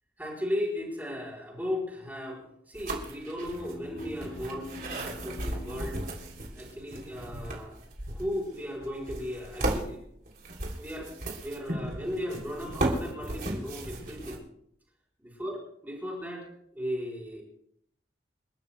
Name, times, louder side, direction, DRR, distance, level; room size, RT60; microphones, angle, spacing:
voice 1, 0.2-6.0 6.5-7.8 8.1-10.0 10.8-11.1 11.4-14.4 15.4-15.6 15.8-16.5 16.7-17.4, equal, 10° right, -4 dB, 5.1 m, -36 dB
sound 1, 2.7-14.4, right 1 dB, 55° right, 3.3 m, -35 dB
sound 2, 3.5-7.2, left 3 dB, 55° left, 1.3 m, -47 dB
29.0 x 12.5 x 2.3 m, 0.72 s
head